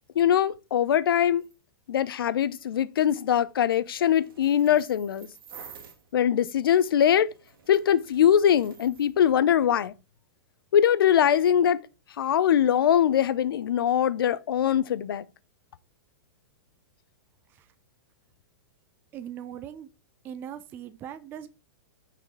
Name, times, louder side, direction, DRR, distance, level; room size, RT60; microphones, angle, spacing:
voice 1, 0.2-1.5 1.9-5.3 6.1-7.3 7.7-9.9 10.7-11.8 12.2-15.2, left 9 dB, 90° left, 0.5 m, -22 dB
sound 1, 1.4-1.6 3.3-6.1 6.7-9.1, right 6 dB, 90° right, 1.8 m, -51 dB
voice 2, 19.1-19.9 20.2-21.5, right 9 dB, 15° right, 0.4 m, -40 dB
5.8 x 4.9 x 3.6 m
hypercardioid pair, 155°, 12 cm